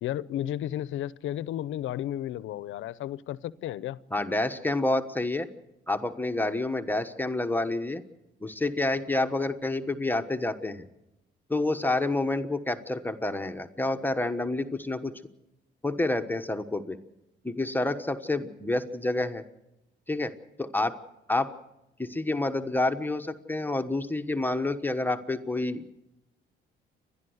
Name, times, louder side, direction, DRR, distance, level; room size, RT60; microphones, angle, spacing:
voice 1, 0.0-4.0, left 12 dB, 80° left, 0.7 m, -33 dB
voice 2, 4.1-5.5 5.9-8.0 8.4-10.8 11.5-15.1 15.8-17.0 17.4-19.4 20.1-20.3 20.6-21.0 21.3-21.5 22.0-25.8, left 2 dB, 10° left, 1.2 m, -28 dB
29.5 x 11.5 x 8.0 m
cardioid pair, 90°, 20 cm